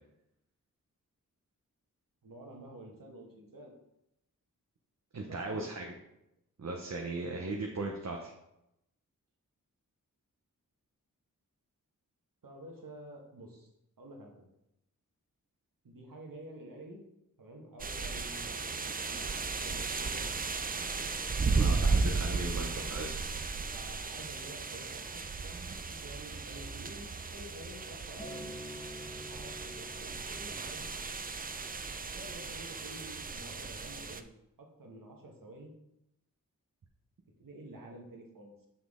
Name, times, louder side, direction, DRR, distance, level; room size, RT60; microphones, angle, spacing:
voice 1, 2.2-3.7 5.2-5.7 12.4-13.7 14.0-14.5 15.8-17.0 17.4-20.3 22.2-23.0 23.7-28.5 29.2-30.8 32.1-34.3 34.6-35.7 37.4-38.7, right 1 dB, 80° right, 0 dB, 1.5 m, -50 dB
voice 2, 5.1-5.9 6.6-8.3 21.5-23.1, right 2 dB, 55° right, 1 dB, 0.9 m, -37 dB
sound 1, 17.8-34.2, right 4 dB, 25° right, 0.4 m, -35 dB
Acoustic guitar, 28.2-32.5 33.3-33.4, left 1 dB, 15° left, 1.3 m, -49 dB
6.1 x 5.9 x 3.6 m, 0.85 s
wide cardioid pair, 85°, 33 cm